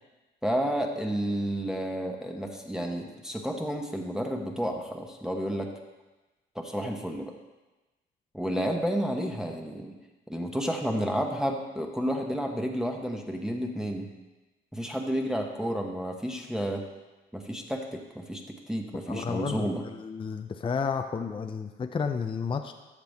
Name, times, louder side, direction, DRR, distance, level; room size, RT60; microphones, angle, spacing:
voice 1, 0.4-5.7 6.5-7.3 8.3-9.9 10.3-14.1 14.7-16.8 17.3-18.4 18.7-19.8, equal, 5° right, 1 dB, 1.0 m, -31 dB
voice 2, 19.1-22.7, left 5 dB, 25° left, 6 dB, 0.5 m, -32 dB
13.0 x 6.0 x 3.5 m, 1.1 s
cardioid pair, 90°, 20 cm